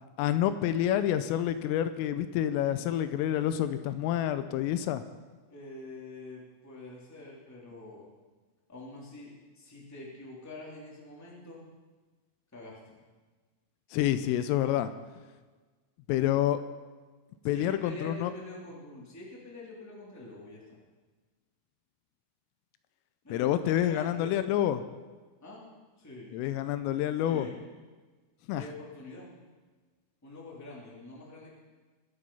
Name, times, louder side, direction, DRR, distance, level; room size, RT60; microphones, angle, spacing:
voice 1, 0.2-5.0 13.9-14.9 16.1-16.6 17.5-18.3 23.3-24.8 26.3-27.5 28.5-28.6, left 11 dB, 85° left, 11 dB, 3.2 m, -28 dB
voice 2, 5.5-8.1 8.7-11.6 12.5-13.0 17.4-20.8 23.2-24.3 25.4-25.6 26.0-26.4 27.1-27.6 28.5-29.3 30.2-31.5, left 2 dB, 5° left, -4 dB, 1.7 m, -45 dB
22.0 x 8.0 x 5.6 m, 1.3 s
omnidirectional pair, 6.0 m